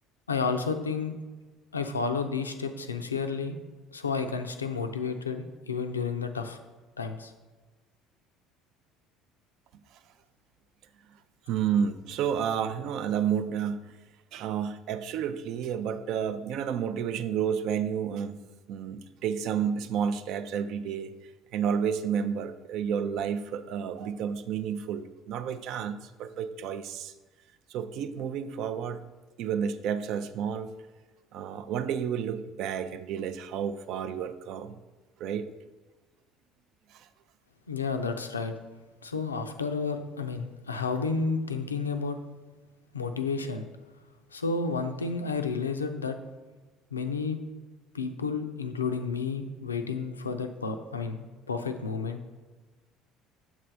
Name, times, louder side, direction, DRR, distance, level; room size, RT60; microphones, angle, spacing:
voice 1, 0.3-1.1 1.7-3.6 3.9-6.6 7.0-7.3 37.7-38.5 39.0-42.2 42.9-43.7 44.3-46.2 46.9-47.4 47.9-52.3, left 4 dB, 80° left, 7 dB, 0.4 m, -31 dB
voice 2, 11.5-13.8 14.3-18.4 18.7-21.1 21.5-27.1 27.7-29.0 29.4-30.7 31.3-34.7 35.2-35.5 36.9-37.1, right 8 dB, 55° right, 11 dB, 0.4 m, -31 dB
7.2 x 3.2 x 5.1 m, 1.3 s
figure-of-eight pair, 60°, 0 cm